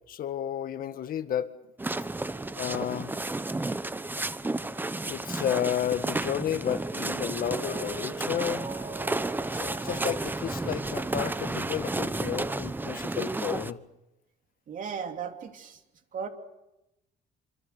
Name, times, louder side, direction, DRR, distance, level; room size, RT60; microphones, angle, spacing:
voice 1, 0.1-1.5 2.6-3.1 5.1-9.2 9.5-13.8, left 10 dB, 55° left, 9 dB, 1.9 m, -32 dB
sound 1, 1.8-13.7, right 2 dB, 10° right, 0.9 m, -32 dB
Mallet percussion, 7.0-12.0, right 3 dB, 30° right, 6.1 m, -43 dB
voice 2, 14.7-15.8 16.1-16.3, right 6 dB, 50° right, 5 dB, 3.0 m, -36 dB
27.0 x 25.5 x 6.8 m, 0.93 s
cardioid pair, 110°, 17 cm